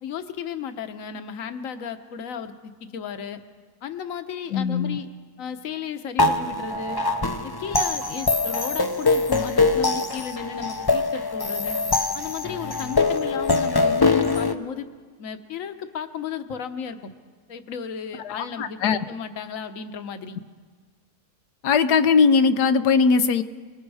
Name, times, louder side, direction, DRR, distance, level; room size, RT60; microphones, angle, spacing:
voice 1, 0.0-3.4 3.8-5.1 5.4-7.0 7.4-11.8 12.1-14.9 15.2-17.1 17.5-20.4, left 7 dB, 60° left, 9 dB, 1.4 m, -34 dB
voice 2, 4.5-5.0 18.2-19.0 21.6-23.4, left 5 dB, 85° left, 10 dB, 1.4 m, -20 dB
sound 1, 6.2-14.5, left 3 dB, 25° left, 0.4 m, -23 dB
29.5 x 20.0 x 4.9 m, 1.5 s
omnidirectional pair, 1.7 m